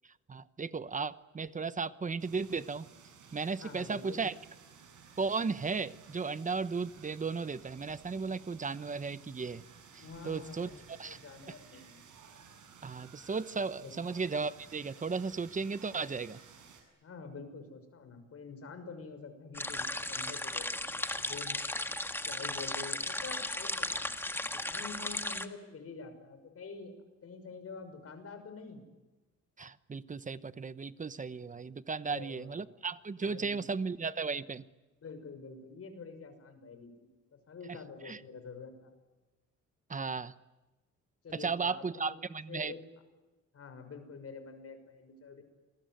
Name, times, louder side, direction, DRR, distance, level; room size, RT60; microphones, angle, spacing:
voice 1, 0.3-2.9 3.3-4.3 5.2-9.6 9.9-10.7 11.0-11.2 12.8-16.4 29.6-34.6 38.0-38.2 39.9-40.3 41.3-42.7, right 4 dB, 25° right, 14 dB, 1.0 m, -35 dB
sound 1, 2.2-16.8, right 6 dB, 75° right, 7.8 m, -56 dB
voice 2, 3.6-4.3 10.0-12.0 13.8-14.0 17.0-21.6 22.3-24.1 24.5-27.0 27.2-28.8 32.0-32.7 33.2-33.7 35.0-38.9 41.2-42.2 42.5-42.8 43.5-45.4, left 4 dB, 50° left, 8 dB, 6.1 m, -47 dB
sound 2, 19.5-25.5, left 1 dB, 5° left, 1.6 m, -36 dB
28.0 x 22.0 x 9.3 m, 1.1 s
cardioid pair, 125°, 30 cm